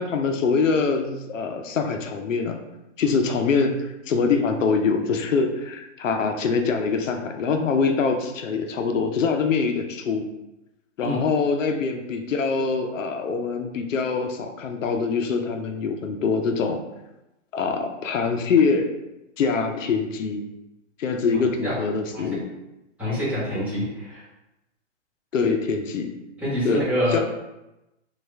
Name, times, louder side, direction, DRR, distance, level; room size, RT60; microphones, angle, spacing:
voice 1, 0.0-2.6 3.0-10.3 11.0-16.8 17.5-18.9 19.4-20.4 21.0-22.4 25.3-26.1 26.6-26.9 27.1-27.2, left 5 dB, 90° left, 5 dB, 0.6 m, -24 dB
voice 2, 23.0-24.2 26.4-27.2, equal, 5° right, -11 dB, 1.3 m, -26 dB
3.3 x 2.4 x 3.2 m, 0.95 s
hypercardioid pair, 145°, 37 cm